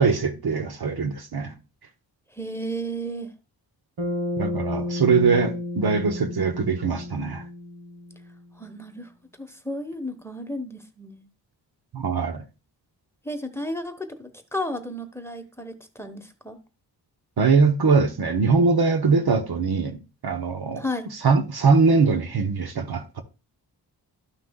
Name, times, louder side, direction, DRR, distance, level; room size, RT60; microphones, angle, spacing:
voice 1, 0.0-1.5 4.4-7.4 11.9-12.4 17.4-20.8 21.2-23.2, right 4 dB, 60° right, 1.1 m, -22 dB
voice 2, 2.3-3.3 8.6-9.1 9.4-11.3 13.2-16.6 20.8-21.1, equal, 5° left, 1.2 m, -33 dB
Bass guitar, 4.0-8.4, left 1 dB, 85° right, 1.6 m, -32 dB
13.0 x 5.9 x 2.3 m
cardioid pair, 60°, 43 cm